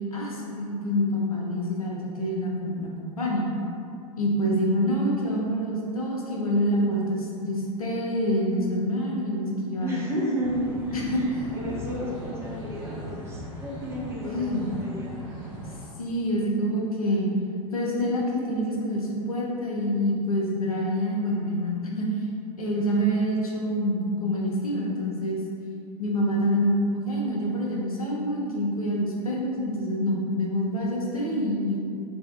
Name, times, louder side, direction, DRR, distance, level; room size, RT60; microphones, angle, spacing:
voice 1, 0.1-3.5 4.2-9.9 10.9-11.4 14.2-14.7 16.0-17.3 17.7-22.1 22.6-25.4 26.0-31.8, equal, 75° left, -4 dB, 0.6 m, -26 dB
voice 2, 9.8-15.3, equal, 15° right, -6 dB, 0.6 m, -32 dB
sound 1, 10.4-15.8, equal, 30° right, 1.1 m, -39 dB
3.1 x 2.6 x 2.3 m, 2.4 s
figure-of-eight pair, 95°, 18 cm